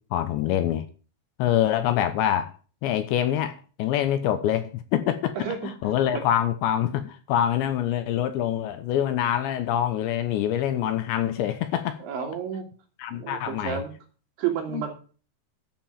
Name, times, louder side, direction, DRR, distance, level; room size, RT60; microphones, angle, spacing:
voice 1, 0.1-0.9 1.4-2.5 2.8-5.3 5.8-12.0 13.0-13.8 14.7-14.8, left 11 dB, 75° left, 3.1 m, -25 dB
voice 2, 5.8-6.2 12.0-12.6 13.1-13.9 14.4-14.9, right 8 dB, 70° right, 5.2 m, -31 dB
13.5 x 6.7 x 7.3 m
omnidirectional pair, 5.7 m